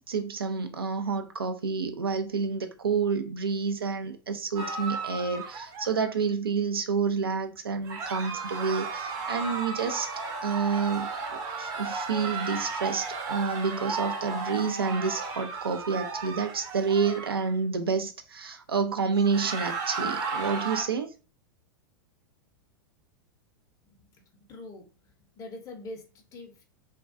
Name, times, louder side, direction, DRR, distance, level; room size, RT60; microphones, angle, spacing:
voice 1, 0.1-10.1 10.4-21.1, right 5 dB, 85° right, 0.4 m, -29 dB
sound 1, 4.6-6.1 7.9-17.5 19.1-20.8, right 4 dB, 30° right, 0.6 m, -34 dB
voice 2, 24.5-26.6, left 2 dB, 30° left, 0.6 m, -44 dB
2.2 x 2.2 x 2.5 m
figure-of-eight pair, 95°, 12 cm